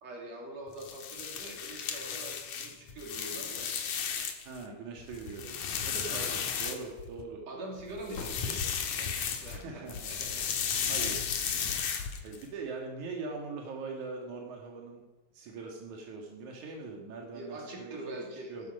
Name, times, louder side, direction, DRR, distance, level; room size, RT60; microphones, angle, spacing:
voice 1, 0.0-3.7 6.1-6.4 7.5-10.6 11.6-11.9 17.3-18.7, right 1 dB, 65° right, 0 dB, 4.3 m, -44 dB
sound 1, 0.7-4.6 5.0-7.2 8.0-9.6 9.9-12.4, left 7 dB, 90° left, 3.0 m, -34 dB
sound 2, 4.1-4.2 4.6-4.7 5.0-6.1 7.8-9.0, left 3 dB, 70° left, 3.2 m, -48 dB
voice 2, 4.4-7.4 9.5-10.0 10.9-11.2 12.2-15.0 15.3-18.2 18.5-18.7, right 4 dB, 85° right, 0 dB, 3.3 m, -41 dB
18.5 x 13.0 x 5.5 m, 1.2 s
omnidirectional pair, 3.3 m